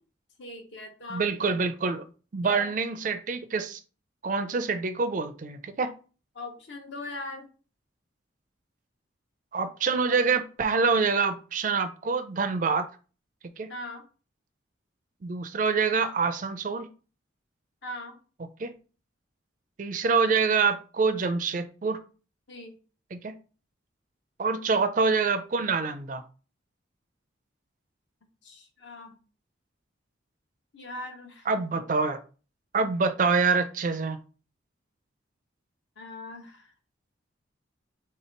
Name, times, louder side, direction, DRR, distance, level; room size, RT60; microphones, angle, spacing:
voice 1, 0.4-1.2 1.5-1.6 2.4-2.7 6.3-7.5 13.7-14.0 17.8-18.2 22.5-22.7 28.4-29.2 30.7-31.5 36.0-36.7, left 1 dB, 65° left, 3 dB, 1.0 m, -40 dB
voice 2, 1.1-2.0 2.3-3.8 4.2-5.9 9.5-12.9 13.6-13.7 15.2-16.9 18.6-18.7 19.8-22.0 23.1-23.4 24.4-26.2 31.5-32.2 32.7-34.2, right 4 dB, 40° right, 10 dB, 0.4 m, -26 dB
3.2 x 2.8 x 4.4 m, 0.36 s
head